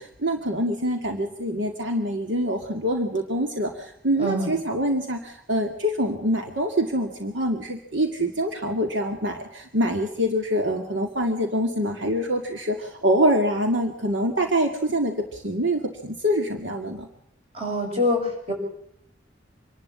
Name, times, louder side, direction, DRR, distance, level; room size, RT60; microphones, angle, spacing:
voice 1, 0.0-17.1, equal, 75° right, 4 dB, 2.3 m, -25 dB
voice 2, 4.2-4.6 17.5-18.5, left 1 dB, 30° right, 1 dB, 7.7 m, -25 dB
26.5 x 12.0 x 8.7 m, 0.73 s
head